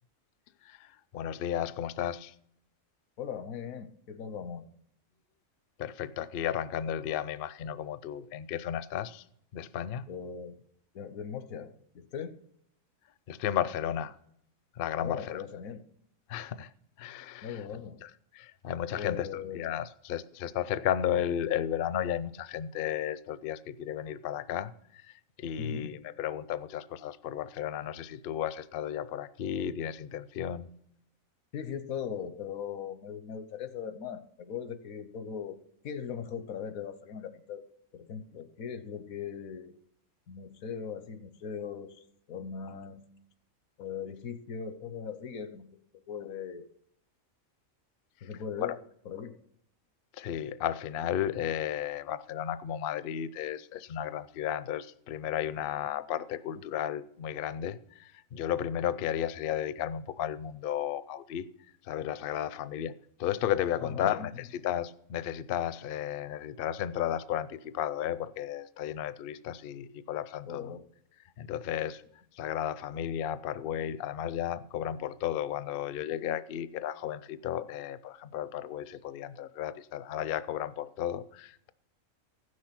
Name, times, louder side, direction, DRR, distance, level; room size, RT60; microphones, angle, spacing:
voice 1, 0.6-2.3 5.8-9.2 9.5-10.1 13.3-14.1 14.7-15.4 16.3-16.7 17.0-17.6 18.0-30.7 48.6-48.8 50.1-61.5 61.8-70.7 71.4-72.0 72.3-81.7, left 10 dB, 60° left, 0.6 m, -34 dB
voice 2, 3.2-4.7 10.1-10.6 10.9-12.3 15.0-15.8 17.4-18.0 18.9-19.8 25.6-25.9 31.5-35.6 35.8-37.6 37.9-39.7 40.3-43.0 43.8-45.7 46.1-46.7 48.2-48.7 49.0-49.4 63.9-64.3 70.5-70.8, left 7 dB, 85° left, 1.3 m, -39 dB
15.5 x 6.4 x 5.9 m
omnidirectional pair, 1.4 m